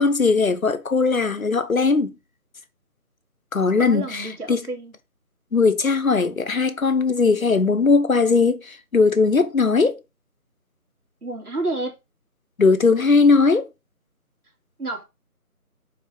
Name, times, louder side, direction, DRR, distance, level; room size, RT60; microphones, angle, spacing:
voice 1, 0.0-2.1 3.5-4.6 5.5-10.0 12.6-13.7, left 4 dB, 60° left, 0.9 m, -19 dB
voice 2, 3.8-4.9 11.2-11.9 14.8-15.0, right 2 dB, 70° right, 3.4 m, -29 dB
5.8 x 4.2 x 5.2 m
figure-of-eight pair, 170°, 46 cm